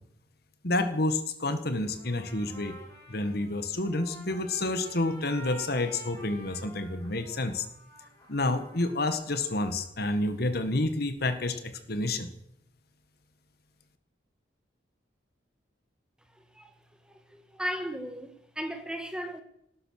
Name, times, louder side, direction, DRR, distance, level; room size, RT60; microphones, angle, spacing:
voice 1, 0.6-2.8 3.1-7.7 8.3-12.3, left 2 dB, 55° left, 1.8 m, -29 dB
Trumpet, 1.9-9.9, right 1 dB, 15° left, 7.1 m, -50 dB
voice 2, 16.3-16.7 17.0-19.4, equal, 5° right, 1.6 m, -36 dB
18.5 x 11.5 x 6.6 m
head